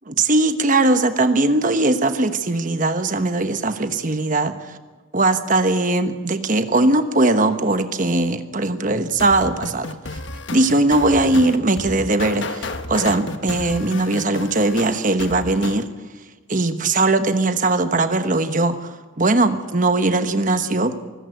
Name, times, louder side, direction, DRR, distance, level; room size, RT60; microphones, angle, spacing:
voice 1, 0.2-4.8 5.1-10.2 10.5-15.9 16.5-20.9, right 2 dB, 40° right, 9 dB, 1.1 m, -20 dB
sound 1, 9.2-15.8, left 3 dB, 60° left, 1.3 m, -32 dB
24.5 x 14.5 x 8.1 m, 1.3 s
head